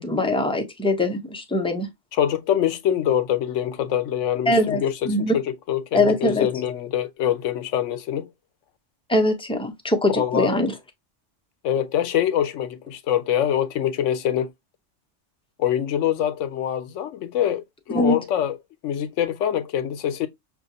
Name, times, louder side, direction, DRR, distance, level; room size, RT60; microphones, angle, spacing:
voice 1, 0.0-1.9 4.5-5.4 5.9-6.5 9.1-10.7 17.9-18.2, left 1 dB, 5° left, 0.4 m, -22 dB
voice 2, 2.2-8.3 10.1-10.5 11.6-14.5 15.6-18.6 18.8-20.3, left 10 dB, 80° left, 1.0 m, -24 dB
5.9 x 2.5 x 2.7 m
omnidirectional pair, 1.3 m